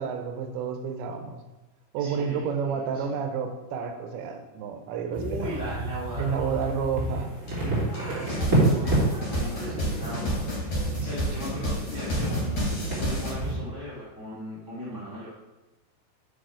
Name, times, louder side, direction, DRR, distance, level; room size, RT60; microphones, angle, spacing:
voice 1, 0.0-1.4 1.9-5.6 6.2-7.3 8.1-8.2 14.9-15.0, right 6 dB, 85° right, 6 dB, 2.9 m, -30 dB
voice 2, 2.0-3.2 5.1-6.7 7.5-12.6 13.0-15.3, equal, 70° left, -7 dB, 0.4 m, -38 dB
sound 1, 5.1-13.5, right 2 dB, 25° right, 2.4 m, -29 dB
sound 2, 7.5-7.6 7.9-13.3, equal, 40° left, 3.3 m, -30 dB
6.4 x 6.2 x 4.8 m, 1.1 s
omnidirectional pair, 5.2 m